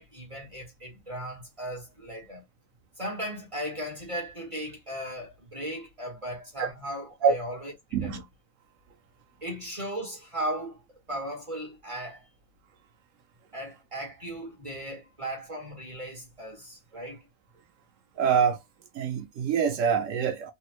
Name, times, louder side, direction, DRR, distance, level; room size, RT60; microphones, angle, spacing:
voice 1, 0.0-2.4 3.0-8.2 9.4-10.8 11.1-12.3 13.5-17.3, right 1 dB, 25° right, 0.9 m, -37 dB
voice 2, 18.2-18.6 18.9-20.5, right 7 dB, 65° right, 0.8 m, -25 dB
3.4 x 2.0 x 2.9 m
omnidirectional pair, 1.7 m